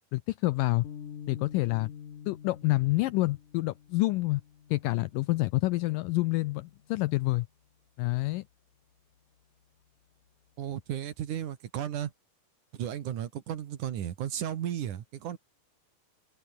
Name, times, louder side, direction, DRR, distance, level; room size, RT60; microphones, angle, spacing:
voice 1, 0.1-0.9 1.3-1.9 2.3-4.4 4.7-7.5 8.0-8.4, left 20 dB, 80° left, 1.9 m, -28 dB
sound 1, 0.8-7.3, left 8 dB, 60° left, 4.0 m, -48 dB
voice 2, 10.6-12.1 12.7-15.4, right 10 dB, 60° right, 2.8 m, -34 dB
omnidirectional pair, 4.4 m